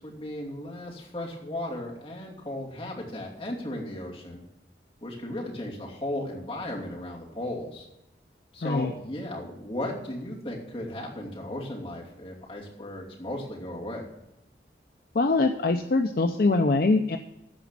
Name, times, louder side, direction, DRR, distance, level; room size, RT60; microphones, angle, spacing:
voice 1, 0.0-4.4 5.0-7.9 8.5-14.1, left 1 dB, 30° left, -4 dB, 2.8 m, -36 dB
voice 2, 8.6-8.9 15.1-17.2, left 3 dB, 55° left, 6 dB, 0.5 m, -23 dB
14.0 x 5.1 x 7.2 m, 0.87 s
head